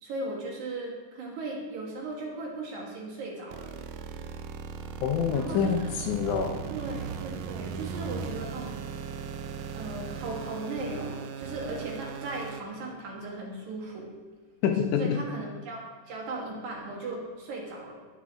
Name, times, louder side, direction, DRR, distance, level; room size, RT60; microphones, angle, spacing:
voice 1, 0.0-3.7 5.3-5.9 6.4-8.8 9.7-14.1 15.0-17.9, right 2 dB, 65° right, -1 dB, 2.7 m, -37 dB
sound 1, 3.5-12.6, right 6 dB, 80° right, 2.2 m, -38 dB
voice 2, 5.0-6.6 14.6-15.2, left 7 dB, 75° left, 4 dB, 2.0 m, -26 dB
9.5 x 9.5 x 3.9 m, 1.5 s
omnidirectional pair, 3.9 m